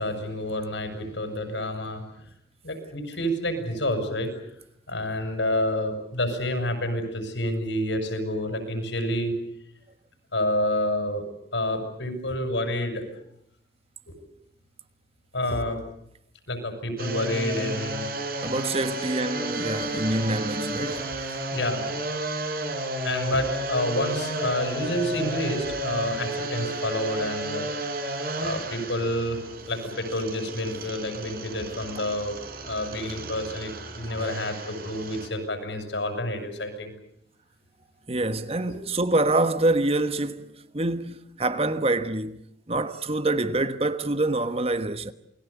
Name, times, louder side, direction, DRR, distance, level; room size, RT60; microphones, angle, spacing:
voice 1, 0.0-2.2 2.6-4.3 4.9-9.3 10.3-11.2 11.5-13.1 14.1-14.2 15.3-15.8 16.5-18.1 20.2-20.3 21.5-21.9 23.0-27.7 28.4-29.4 29.7-32.4 32.6-36.9 38.7-38.8, left 1 dB, 80° left, 6.5 m, -29 dB
sound 1, 17.0-35.3, right 1 dB, 50° right, 4.8 m, -32 dB
voice 2, 18.4-21.1 34.1-34.3 38.1-42.4 42.7-45.1, right 2 dB, 30° right, 1.2 m, -26 dB
28.5 x 21.0 x 8.3 m
head